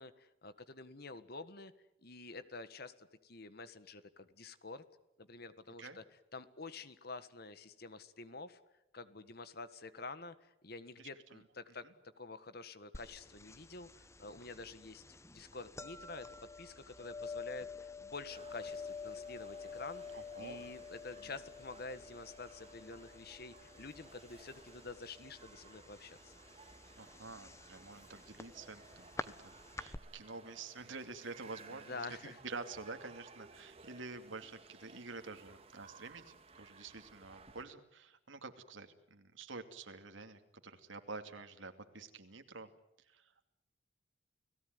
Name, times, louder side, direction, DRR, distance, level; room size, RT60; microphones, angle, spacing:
voice 1, 0.0-1.7 2.0-4.8 5.2-6.0 6.3-8.6 8.9-11.8 12.2-15.0 15.3-16.3 16.6-26.3 31.7-32.4, left 3 dB, 55° left, 13 dB, 1.6 m, -48 dB
voice 2, 11.0-11.4 11.8-11.9 20.1-20.6 21.2-21.3 27.0-42.7 43.1-43.3, right 3 dB, 80° right, 7 dB, 2.6 m, -48 dB
sound 1, 12.9-30.0, left 4 dB, 15° left, 0.9 m, -49 dB
sound 2, 18.3-37.6, right 4 dB, 30° right, 2.2 m, -59 dB
30.0 x 18.0 x 9.5 m, 0.89 s
head